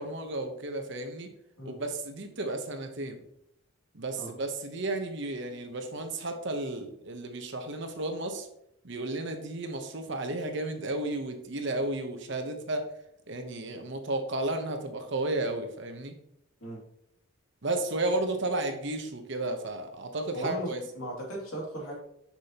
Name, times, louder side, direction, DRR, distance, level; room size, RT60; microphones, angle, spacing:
voice 1, 0.0-1.3 1.6-3.2 3.9-8.5 8.8-12.9 13.3-16.1 17.6-20.8, right 2 dB, 55° right, 6 dB, 0.9 m, -33 dB
voice 2, 20.3-20.7 20.9-21.9, right 1 dB, 75° left, -2 dB, 2.5 m, -36 dB
6.6 x 6.0 x 2.9 m, 0.75 s
head